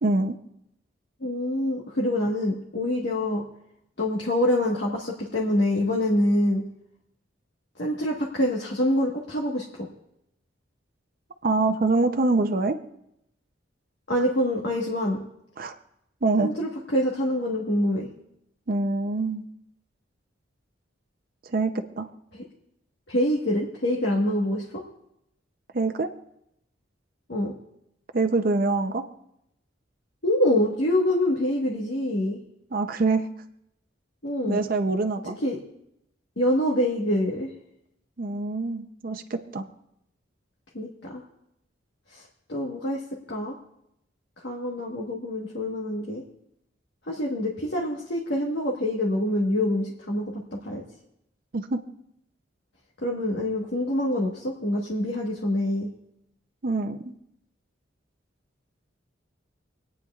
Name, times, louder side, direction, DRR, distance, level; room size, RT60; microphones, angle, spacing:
voice 1, 0.0-0.4 11.4-12.8 15.6-15.7 16.2-16.5 18.7-19.4 21.5-22.1 25.7-26.1 28.1-29.1 32.7-33.3 34.5-35.4 38.2-39.7 51.5-51.8 56.6-57.1, right 3 dB, 50° right, 6 dB, 0.6 m, -25 dB
voice 2, 1.2-3.4 4.0-6.6 7.8-9.9 14.1-15.2 16.4-18.1 22.3-22.4 23.1-24.8 27.3-27.5 30.2-32.4 34.2-34.6 35.4-35.6 36.4-37.5 40.7-41.2 42.1-42.2 42.5-43.0 43.3-43.6 44.4-46.2 47.0-50.8 53.0-55.9, left 1 dB, 65° left, -3 dB, 1.4 m, -25 dB
27.5 x 9.3 x 2.4 m, 0.80 s
head